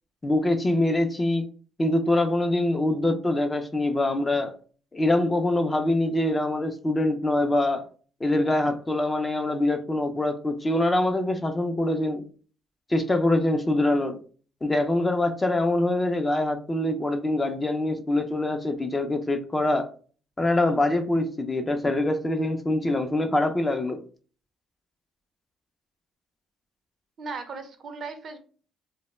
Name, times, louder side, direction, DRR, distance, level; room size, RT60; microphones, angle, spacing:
voice 1, 0.2-1.5 1.8-4.5 4.9-7.8 8.2-12.2 12.9-14.1 14.6-19.9 20.4-24.0, left 1 dB, 20° left, 0.4 m, -24 dB
voice 2, 23.7-24.0 27.2-28.4, right 4 dB, 55° right, 0.5 m, -37 dB
2.1 x 2.1 x 3.0 m
supercardioid pair, 80°, 0 cm